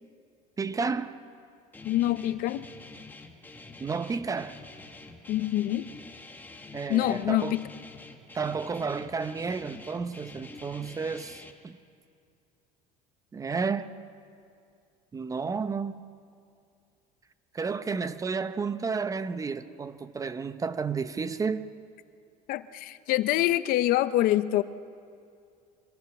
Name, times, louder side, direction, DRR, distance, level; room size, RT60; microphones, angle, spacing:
voice 1, 0.6-1.2 3.8-4.6 6.7-7.6 8.3-11.8 13.3-13.9 15.1-16.0 17.5-21.7, right 5 dB, 20° right, 13 dB, 0.7 m, -31 dB
Guitar, 1.7-11.5, left 3 dB, 10° left, 1.6 m, -47 dB
voice 2, 1.8-2.7 5.3-5.9 6.9-7.6 22.5-24.6, left 14 dB, 60° left, 14 dB, 0.7 m, -25 dB
24.5 x 21.5 x 6.0 m, 2.4 s
cardioid pair, 125°, 17 cm